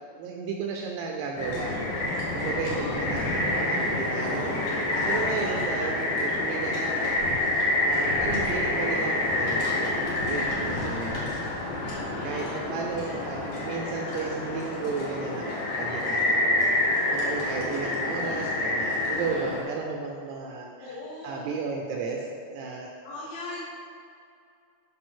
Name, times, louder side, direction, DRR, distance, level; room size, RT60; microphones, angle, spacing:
voice 1, 0.2-1.7 2.3-4.6 5.0-7.2 7.9-11.3 12.2-21.0 21.2-22.9, right 4 dB, 80° right, 1 dB, 2.5 m, -34 dB
sound 1, 1.4-19.6, left 1 dB, 65° left, 2.1 m, -28 dB
voice 2, 2.3-4.1 5.3-5.9 8.2-8.7 10.4-11.2 11.8-12.8 15.7-16.1 17.4-17.9 19.1-19.6 20.8-21.5 23.0-23.6, left 1 dB, 90° left, -10 dB, 4.1 m, -42 dB
11.5 x 5.7 x 3.7 m, 2.5 s
omnidirectional pair, 5.3 m